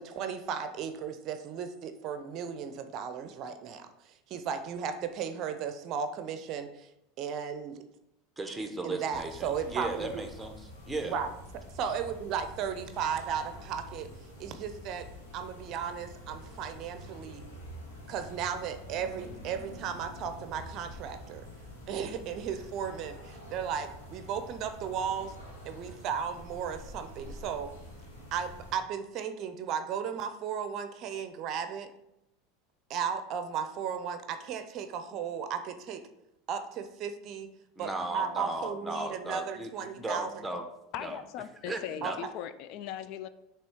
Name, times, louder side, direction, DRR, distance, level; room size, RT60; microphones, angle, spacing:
voice 1, 0.0-6.9 7.2-7.8 8.8-10.2 11.0-11.3 11.8-14.1 14.4-15.1 15.3-17.4 18.1-21.5 21.9-25.3 25.7-27.7 28.3-31.9 32.9-36.1 36.5-37.5 37.8-40.4 42.0-42.1, right 7 dB, 50° right, 9 dB, 0.6 m, -35 dB
voice 2, 8.4-11.2 37.8-40.7 41.0-41.2 41.7-42.2, right 2 dB, 10° right, 4 dB, 1.0 m, -36 dB
sound 1, 9.1-28.8, equal, 85° left, 2.1 m, -47 dB
voice 3, 40.9-43.3, left 10 dB, 55° left, 12 dB, 0.4 m, -39 dB
6.1 x 3.4 x 4.5 m, 0.85 s
hypercardioid pair, 85°, 0 cm